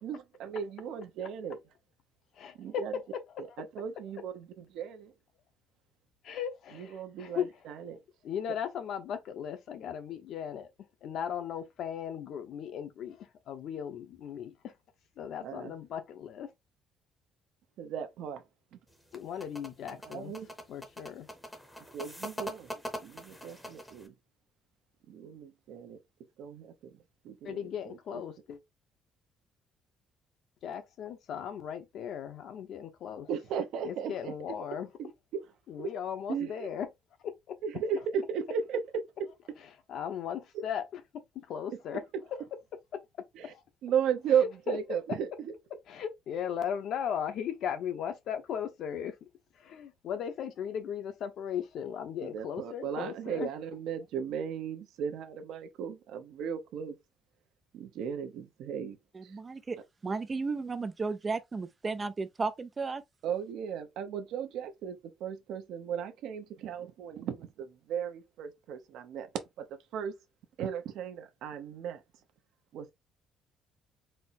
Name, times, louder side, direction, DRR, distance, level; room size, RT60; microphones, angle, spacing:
voice 1, 0.0-1.6 2.6-2.9 3.4-5.1 6.7-8.0 15.4-15.7 17.8-18.4 18.7-18.8 20.1-20.5 21.9-22.7 23.0-24.2 25.1-26.0 26.4-27.0 27.2-28.2 33.3-34.6 35.0-35.5 35.8-35.9 36.3-36.7 37.6-39.6 40.5-40.6 43.3-43.5 43.8-45.6 52.2-57.0 57.7-59.0 59.2-59.4 63.2-69.3 69.6-70.1 70.6-72.0 72.7-72.9, right 8 dB, 70° right, 0.8 m, -36 dB
voice 2, 2.4-2.8 6.2-7.5 8.2-10.7 11.0-14.5 15.2-16.5 19.1-20.3 20.7-21.3 27.4-28.6 30.6-33.3 33.8-34.9 35.7-36.9 37.2-37.6 39.9-40.8 41.1-42.0 42.9-43.0 43.4-43.6 44.7-44.8 45.9-49.1 49.6-53.5, left 8 dB, 55° left, 0.8 m, -37 dB
sound 1, 18.9-24.1, equal, 5° left, 0.8 m, -42 dB
voice 3, 59.1-59.8 60.0-63.0, right 4 dB, 20° right, 0.3 m, -34 dB
4.3 x 2.1 x 4.1 m
cardioid pair, 170°, 0 cm